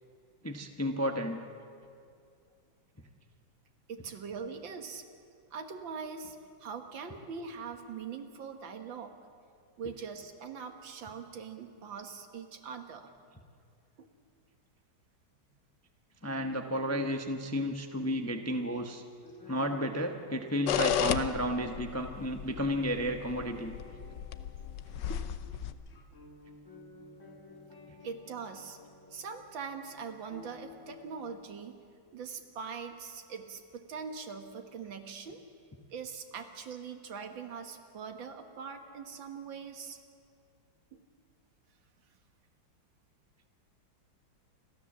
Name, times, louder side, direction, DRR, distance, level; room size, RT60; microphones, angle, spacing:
voice 1, 0.4-1.4 16.2-19.0 19.5-23.7, equal, 15° left, 4 dB, 0.7 m, -32 dB
voice 2, 3.9-5.1 5.5-9.1 9.8-13.1 14.0-14.1 28.0-28.8 29.1-31.7 32.1-35.4 35.9-40.0 40.9-41.0, right 6 dB, 75° right, 6 dB, 2.1 m, -42 dB
sound 1, 19.2-31.1, left 3 dB, 40° left, 2.1 m, -53 dB
sound 2, 20.7-25.7, left 9 dB, 70° left, 1.3 m, -34 dB
29.0 x 13.0 x 7.3 m, 2.4 s
omnidirectional pair, 2.1 m